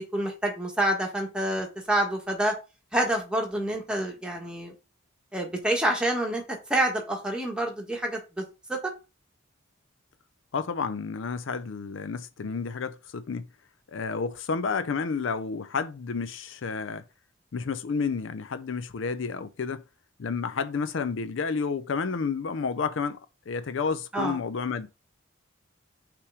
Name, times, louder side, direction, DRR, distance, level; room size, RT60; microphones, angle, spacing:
voice 1, 0.0-2.5 2.9-4.7 5.3-6.4 6.7-8.8 24.1-24.4, right 1 dB, 5° right, 1.4 m, -27 dB
voice 2, 10.5-13.5 13.9-17.0 17.5-19.8 20.2-23.2 23.5-24.9, left 5 dB, 65° left, 0.5 m, -30 dB
5.7 x 3.5 x 4.8 m
head